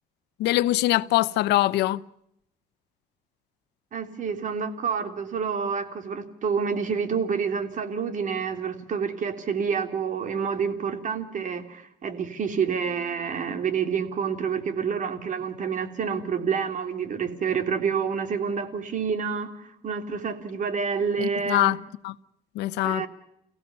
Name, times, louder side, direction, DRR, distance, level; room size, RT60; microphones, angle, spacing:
voice 1, 0.4-2.0 21.2-21.8 22.0-22.1 22.5-23.1, left 16 dB, 85° left, 0.9 m, -23 dB
voice 2, 3.9-19.6 19.8-21.7 22.8-23.1, right 6 dB, 50° right, 3.2 m, -28 dB
29.5 x 16.5 x 6.9 m
cardioid pair, 110°, 17 cm